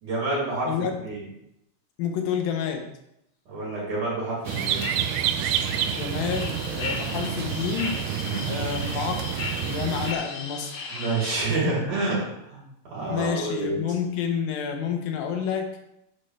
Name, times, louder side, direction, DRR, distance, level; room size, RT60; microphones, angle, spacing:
voice 1, 0.0-1.2 3.5-4.8 8.2-8.5 10.9-12.6 12.9-13.8, right 2 dB, 60° right, -6 dB, 5.1 m, -28 dB
voice 2, 0.7-1.0 2.0-2.9 5.9-8.0 8.4-9.3 9.6-10.7 11.6-11.7 13.1-15.8, left 7 dB, 80° left, 4 dB, 2.9 m, -29 dB
sound 1, 4.4-11.3, left 4 dB, 55° left, 2.0 m, -36 dB
sound 2, 4.4-10.1, right 11 dB, 80° right, 1.9 m, -29 dB
10.0 x 7.2 x 3.3 m, 0.80 s
omnidirectional pair, 4.1 m